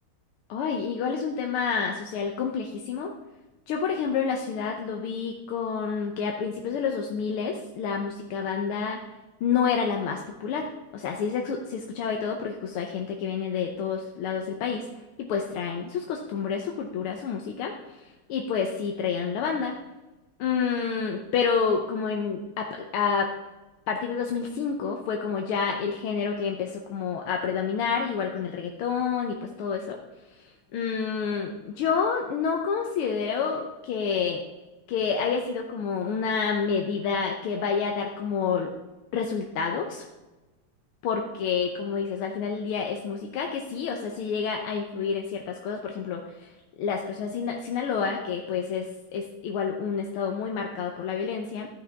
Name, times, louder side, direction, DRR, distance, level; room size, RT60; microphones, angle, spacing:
voice 1, 0.5-3.1 3.7-9.0 9.4-14.9 15.2-17.7 18.3-19.8 20.4-23.3 23.9-30.0 30.7-34.4 34.9-38.7 39.1-40.0 41.0-46.5 46.8-51.7, left 6 dB, 90° left, 2 dB, 1.7 m, -28 dB
12.0 x 5.9 x 3.5 m, 1.1 s
omnidirectional pair, 2.3 m